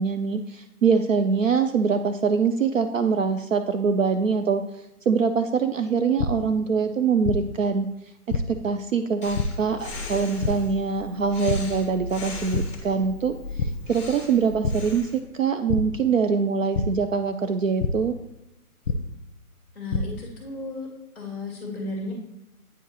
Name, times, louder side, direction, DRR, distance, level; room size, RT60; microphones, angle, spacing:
voice 1, 0.0-4.6 5.1-7.9 8.5-13.4 13.9-18.1, right 5 dB, 60° right, 8 dB, 0.5 m, -23 dB
sound 1, 6.2-6.3 7.2-7.4 8.3-8.4 9.3-9.4 10.4-10.5 11.5-11.6 12.0-12.2 12.5-12.6 13.6-13.7 14.6-14.7 15.7-15.8 16.7-16.8 17.8-17.9 18.9-19.0 19.6-20.0, left 6 dB, 55° left, 0.9 m, -25 dB
Breathing, 9.2-15.2, left 3 dB, 20° left, 0.9 m, -38 dB
voice 2, 19.7-20.9 21.1-22.1, left 2 dB, 5° left, -4 dB, 1.7 m, -34 dB
9.1 x 4.7 x 2.9 m, 0.92 s
hypercardioid pair, 175°, 44 cm